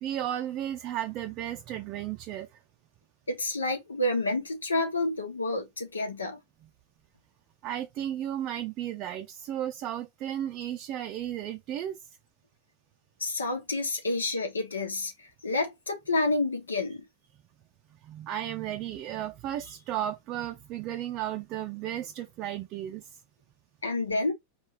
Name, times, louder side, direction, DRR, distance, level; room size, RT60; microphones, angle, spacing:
voice 1, 0.0-2.5 7.6-12.2 18.0-23.2, right 11 dB, 40° right, 0.5 m, -34 dB
voice 2, 3.3-6.4 13.2-17.1 23.8-24.3, left 2 dB, 75° left, 1.2 m, -29 dB
4.3 x 3.4 x 3.1 m
figure-of-eight pair, 90°, 0 cm